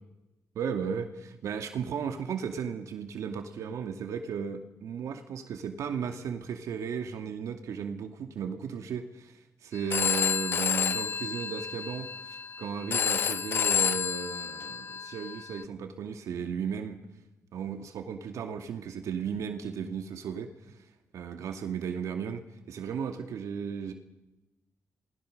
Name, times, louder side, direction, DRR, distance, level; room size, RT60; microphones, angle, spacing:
voice 1, 0.6-12.1 12.6-17.0 17.5-20.8 21.1-22.4 22.7-23.9, right 7 dB, 85° right, 6 dB, 2.3 m, -35 dB
Telephone, 9.7-15.6, left 8 dB, 45° left, 1.0 m, -30 dB
28.5 x 20.5 x 6.7 m, 0.96 s
wide cardioid pair, 160°, 5 cm